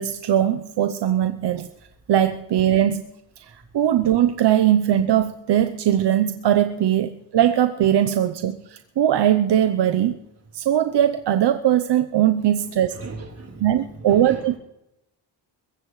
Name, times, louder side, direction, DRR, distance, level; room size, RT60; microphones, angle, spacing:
voice 1, 0.0-1.7 2.1-3.0 3.5-10.1 10.5-13.0 13.6-14.6, right 11 dB, 60° right, 9 dB, 0.8 m, -20 dB
voice 2, 3.4-3.7 12.4-14.6, right 3 dB, 30° right, 1 dB, 4.0 m, -40 dB
21.5 x 17.0 x 3.2 m, 0.84 s
cardioid pair, 105°, 47 cm